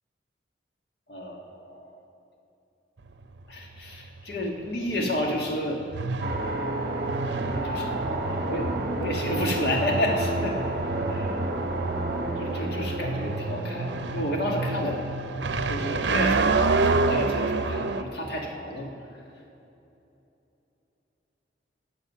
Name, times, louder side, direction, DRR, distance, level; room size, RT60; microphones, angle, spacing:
voice 1, 1.1-2.0 3.5-5.8 7.4-8.0 8.3-10.6 11.1-11.4 12.4-13.9 14.1-15.0 15.7-16.5 16.8-18.9, equal, 60° left, 0 dB, 1.6 m, -30 dB
sound 1, 3.0-18.0, right 3 dB, 80° right, 0.6 m, -29 dB
sound 2, 6.2-17.7, right 2 dB, 55° right, 1.0 m, -32 dB
17.5 x 6.5 x 5.6 m, 2.9 s
head